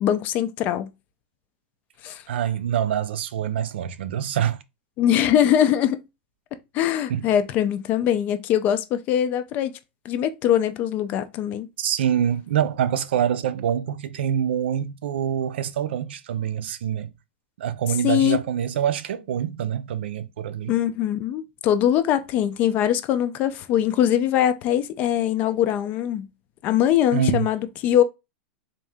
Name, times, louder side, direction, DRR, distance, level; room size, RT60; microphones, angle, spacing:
voice 1, 0.0-0.9 2.0-2.2 5.0-6.0 6.7-9.7 10.1-11.7 18.0-18.4 20.7-26.3 26.6-28.0, left 10 dB, 30° left, 0.4 m, -22 dB
voice 2, 2.3-4.6 7.1-7.3 11.8-17.1 17.6-20.7 27.1-27.5, right 9 dB, 85° right, 0.5 m, -25 dB
3.7 x 2.7 x 3.4 m
supercardioid pair, 165°, 6 cm